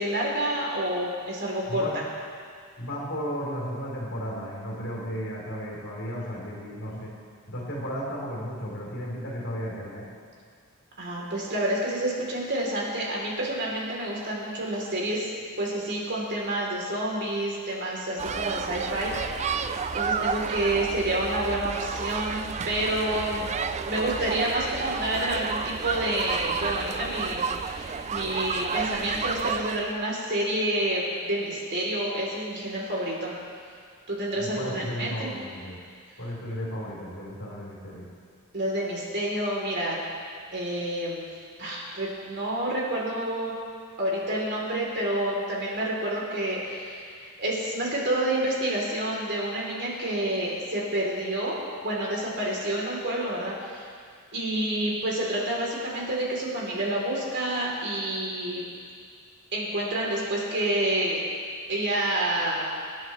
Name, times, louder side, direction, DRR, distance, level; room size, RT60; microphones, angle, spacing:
voice 1, 0.0-1.9 11.0-15.3 15.6-23.5 23.9-33.3 34.1-35.3 38.5-40.0 40.5-41.2 41.6-43.6 44.0-53.9 54.3-58.7 59.5-61.2 61.7-62.7, right 1 dB, 50° right, -3 dB, 3.2 m, -29 dB
voice 2, 1.7-2.0 2.8-7.1 7.5-10.1 34.3-35.8 36.2-38.1, equal, 60° left, -4 dB, 3.8 m, -34 dB
sound 1, 18.2-30.0, right 6 dB, 30° right, 0.4 m, -31 dB
25.0 x 9.9 x 3.2 m, 2.1 s
head